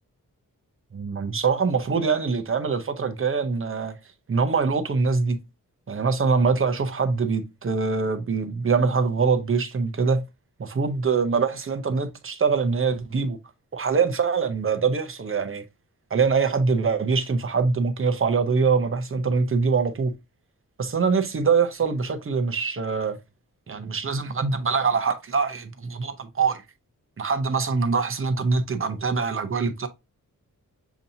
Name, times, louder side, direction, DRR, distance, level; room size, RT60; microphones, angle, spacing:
voice 1, 0.9-4.0 4.3-5.4 5.9-10.2 10.6-13.4 13.7-15.6 16.1-20.1 20.8-23.2 23.7-26.6 27.2-29.9, right 5 dB, 40° right, 0.7 m, -24 dB
7.0 x 2.8 x 2.7 m
wide cardioid pair, 155°, 33 cm